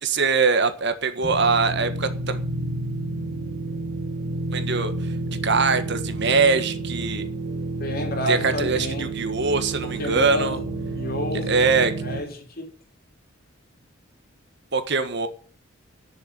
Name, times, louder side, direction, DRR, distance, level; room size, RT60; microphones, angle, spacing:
voice 1, 0.0-2.4 4.5-4.9 5.4-7.3 8.3-10.6 11.5-11.9 14.7-15.3, right 4 dB, 55° right, 1.5 m, -22 dB
sound 1, 1.2-12.2, right 2 dB, 40° right, 2.0 m, -30 dB
voice 2, 7.8-9.1 9.8-10.6 10.9-11.5 12.0-12.7, equal, 45° left, 3.3 m, -30 dB
11.0 x 7.1 x 9.1 m
head